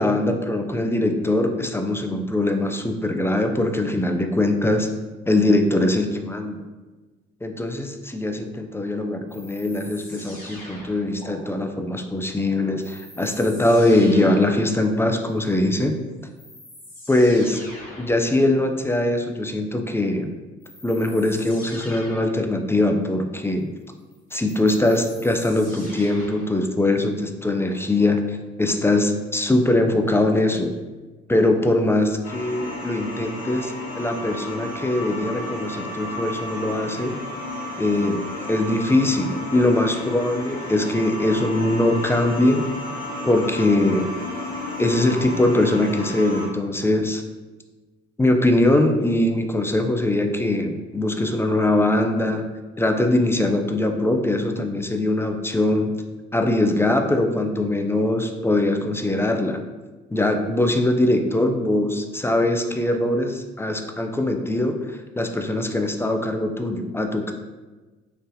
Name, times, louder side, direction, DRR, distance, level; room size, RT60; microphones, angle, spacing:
voice 1, 0.0-4.9 5.3-6.6 7.4-16.0 17.1-17.6 18.0-20.3 20.8-23.7 24.3-30.7 31.3-37.2 37.8-38.2 38.5-42.6 43.2-44.1 44.8-47.2 48.2-52.5 52.8-55.9 56.3-59.6 60.1-67.3, left 1 dB, 10° left, 5 dB, 0.3 m, -22 dB
sound 1, 9.3-11.3 12.8-14.6 15.9-16.0 16.4-18.2 20.6-22.4 24.1-26.6, left 1 dB, 30° left, 1.3 m, -42 dB
sound 2, 32.2-46.5, left 1 dB, 80° left, 1.2 m, -33 dB
4.0 x 2.5 x 2.6 m, 1.2 s
hypercardioid pair, 60°, 29 cm